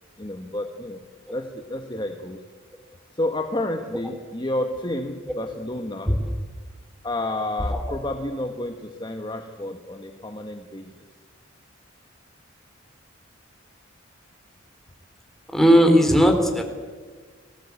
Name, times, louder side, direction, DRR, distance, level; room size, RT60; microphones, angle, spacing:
voice 1, 0.2-2.5 3.1-6.2 7.0-11.0, left 1 dB, 20° left, 5 dB, 1.3 m, -30 dB
voice 2, 15.5-16.6, equal, ahead, 4 dB, 3.5 m, -17 dB
30.0 x 20.0 x 8.4 m, 1.5 s
head